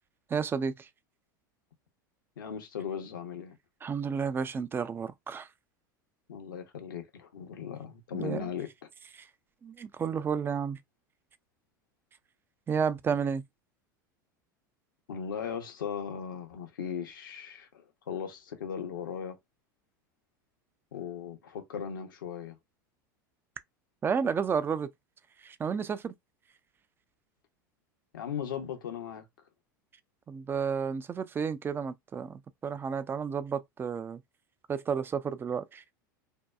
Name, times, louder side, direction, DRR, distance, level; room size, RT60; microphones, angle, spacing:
voice 1, 0.3-0.9 3.8-5.5 8.1-8.5 9.1-9.3 9.6-10.8 12.7-13.4 24.0-24.9 25.4-26.1 30.3-34.2 34.7-35.8, right 6 dB, 20° right, 0.3 m, -31 dB
voice 2, 2.4-3.6 6.3-8.7 15.1-19.4 20.9-22.6 28.1-29.3, left 7 dB, 85° left, 0.8 m, -38 dB
2.6 x 2.2 x 2.3 m
hypercardioid pair, 95°, 11 cm